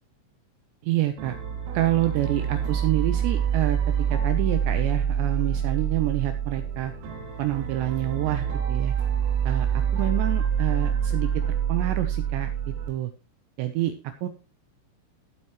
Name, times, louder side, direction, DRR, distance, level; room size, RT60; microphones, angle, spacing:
voice 1, 0.8-1.4 1.7-6.9 7.4-8.9 9.5-13.1 13.6-14.3, right 14 dB, 85° right, 8 dB, 2.6 m, -28 dB
sound 1, 1.2-12.9, right 8 dB, 70° right, 4.8 m, -26 dB
17.5 x 7.8 x 3.0 m, 0.28 s
omnidirectional pair, 5.9 m